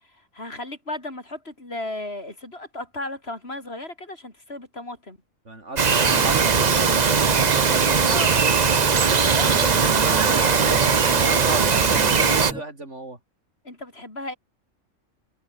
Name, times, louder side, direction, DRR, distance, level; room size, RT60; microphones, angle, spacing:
voice 1, 0.3-5.2 8.1-8.4 8.8-9.5 13.6-14.4, left 2 dB, 50° left, 5.3 m, -35 dB
voice 2, 5.5-8.0 8.8-9.2 10.1-10.8 11.2-13.2, right 2 dB, 60° right, 5.5 m, -34 dB
Bird vocalization bird call bird song, 5.8-12.5, right 6 dB, 35° right, 0.9 m, -19 dB
sound 1, 6.1-12.6, equal, 5° right, 3.2 m, -35 dB
omnidirectional pair, 1.4 m